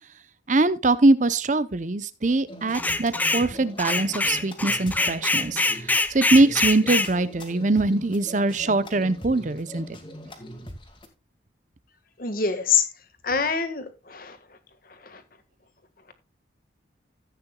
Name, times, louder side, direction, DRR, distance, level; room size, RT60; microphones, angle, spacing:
voice 1, 0.5-10.0, right 2 dB, 40° right, 0.7 m, -22 dB
sound 1, 2.5-11.1, equal, 25° left, 2.1 m, -41 dB
sound 2, 2.7-3.5 3.8-7.1, left 2 dB, 10° left, 0.5 m, -24 dB
voice 2, 12.2-12.8 13.2-14.4 15.0-15.2, left 6 dB, 50° left, 1.7 m, -25 dB
14.5 x 9.0 x 2.3 m
head